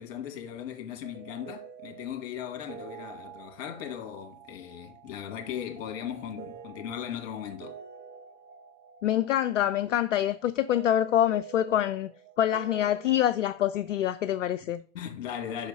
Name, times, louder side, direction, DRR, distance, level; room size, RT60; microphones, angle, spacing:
voice 1, 0.0-7.8 14.9-15.7, left 9 dB, 55° left, 1.7 m, -38 dB
sound 1, 1.0-14.0, right 8 dB, 25° right, 0.7 m, -48 dB
voice 2, 9.0-12.1 12.4-14.8, left 11 dB, 75° left, 0.5 m, -26 dB
5.7 x 4.4 x 5.3 m
figure-of-eight pair, 95°, 38 cm